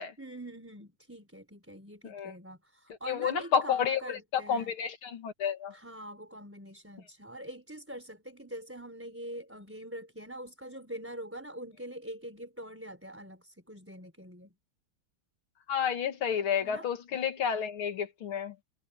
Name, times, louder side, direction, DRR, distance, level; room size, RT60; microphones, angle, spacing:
voice 1, 0.2-4.7 5.7-14.5 16.6-16.9, right 1 dB, 5° right, 4.4 m, -44 dB
voice 2, 3.1-5.7 15.7-18.5, left 7 dB, 75° left, 2.7 m, -30 dB
omnidirectional pair, 2.3 m